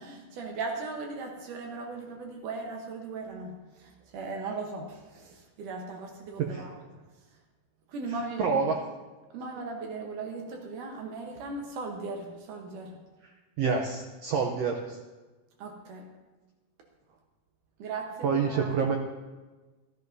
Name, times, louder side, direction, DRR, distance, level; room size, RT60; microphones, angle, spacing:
voice 1, 0.0-6.7 7.9-8.6 9.3-13.0 15.6-16.1 17.8-18.8, right 3 dB, 70° right, 2 dB, 2.6 m, -38 dB
voice 2, 8.4-8.8 13.6-15.0 18.2-19.0, right 5 dB, 85° right, 2 dB, 1.4 m, -27 dB
13.5 x 13.0 x 2.7 m, 1.2 s
omnidirectional pair, 3.9 m